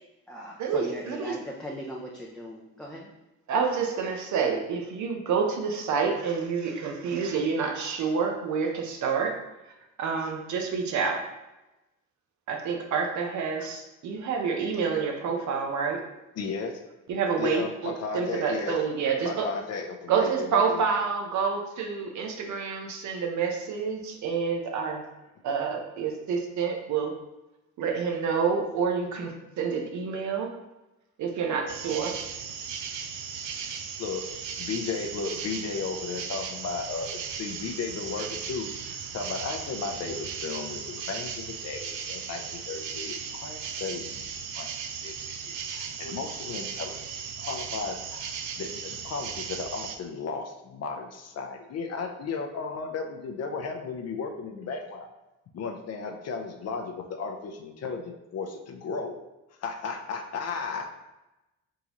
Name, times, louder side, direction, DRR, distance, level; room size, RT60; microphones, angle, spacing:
voice 1, 0.0-3.1, equal, ahead, -3 dB, 0.5 m, -39 dB
voice 2, 0.6-1.3 3.5-9.4 10.0-11.2 12.5-16.0 17.1-19.5 20.1-25.0 25.4-27.1 27.8-30.5 31.2-32.1, right 5 dB, 70° right, 3 dB, 0.8 m, -28 dB
voice 3, 16.4-16.7 17.4-18.8 19.2-20.8 34.0-34.3 34.6-44.7 45.0-45.2 45.5-47.0 47.4-55.1 55.5-59.2 59.6-60.9, left 5 dB, 55° left, 4 dB, 0.6 m, -35 dB
sound 1, 31.7-50.0, right 7 dB, 90° right, 0.5 m, -37 dB
3.9 x 3.7 x 3.0 m, 0.99 s
cardioid pair, 90°, 30 cm